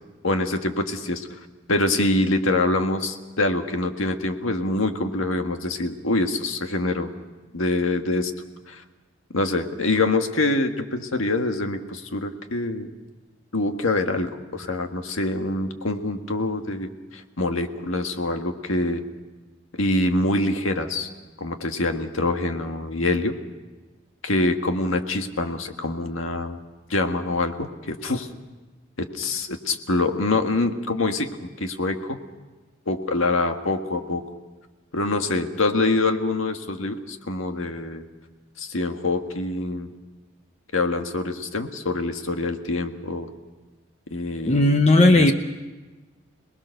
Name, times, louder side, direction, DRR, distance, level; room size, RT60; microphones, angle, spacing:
voice 1, 0.2-1.3 1.7-7.1 7.5-8.3 8.7-8.8 9.3-12.9 13.5-19.0 19.7-21.1 21.4-23.4 24.2-26.6 26.9-28.3 29.0-32.2 32.9-34.2 34.9-38.1 38.6-39.9 40.7-43.3 44.1-44.7 45.1-45.3, left 2 dB, 90° left, 5 dB, 1.8 m, -25 dB
voice 2, 44.5-45.3, left 2 dB, 30° left, 5 dB, 0.9 m, -15 dB
28.0 x 20.0 x 6.7 m, 1.2 s
head